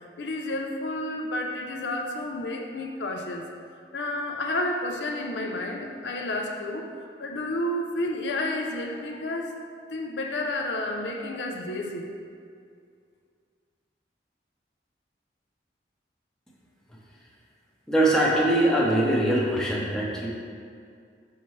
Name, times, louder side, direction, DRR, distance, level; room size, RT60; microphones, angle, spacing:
voice 1, 0.2-3.5 3.9-9.5 9.9-12.1, left 1 dB, 85° left, 2 dB, 0.6 m, -31 dB
voice 2, 17.9-20.3, right 1 dB, 5° left, -5 dB, 0.8 m, -22 dB
5.8 x 5.5 x 3.2 m, 2.3 s
head